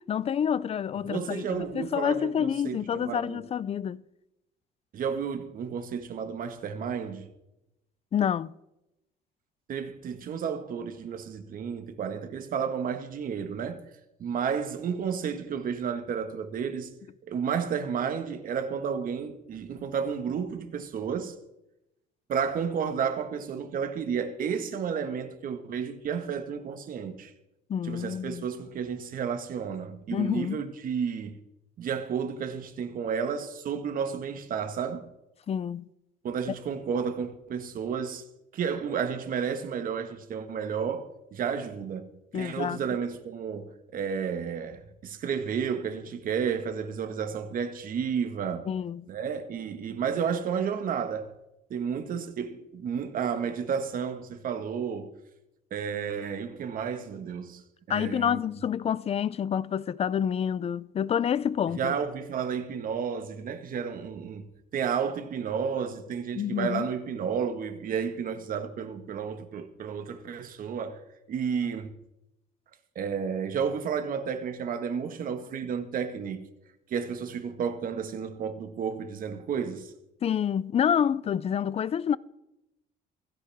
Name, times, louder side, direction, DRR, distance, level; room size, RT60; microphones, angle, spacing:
voice 1, 0.1-4.0 8.1-8.5 27.7-28.5 30.1-30.6 35.5-35.9 42.3-42.8 48.7-49.1 57.9-61.9 66.4-66.8 80.2-82.2, left 8 dB, 35° left, 0.5 m, -28 dB
voice 2, 1.1-3.4 4.9-7.3 9.7-13.8 14.2-16.9 17.2-21.4 22.3-27.3 27.8-31.4 31.8-35.1 36.2-38.2 38.5-42.1 42.3-48.7 49.1-51.3 51.7-55.1 55.7-58.4 61.7-64.4 64.7-71.0 71.3-71.9 72.9-76.4 76.9-79.9, right 7 dB, 55° right, 1.7 m, -32 dB
16.0 x 16.0 x 3.6 m
cardioid pair, 110°, 17 cm